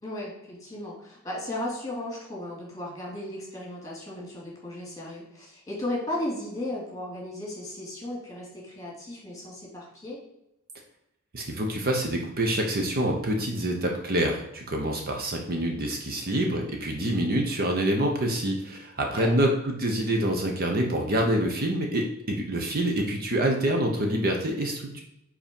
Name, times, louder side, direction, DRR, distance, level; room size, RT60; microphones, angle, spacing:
voice 1, 0.0-10.2 19.1-19.3, left 1 dB, 15° left, -3 dB, 2.3 m, -35 dB
voice 2, 11.3-25.0, right 1 dB, 45° right, 2 dB, 0.9 m, -26 dB
5.0 x 4.3 x 5.2 m, 0.83 s
head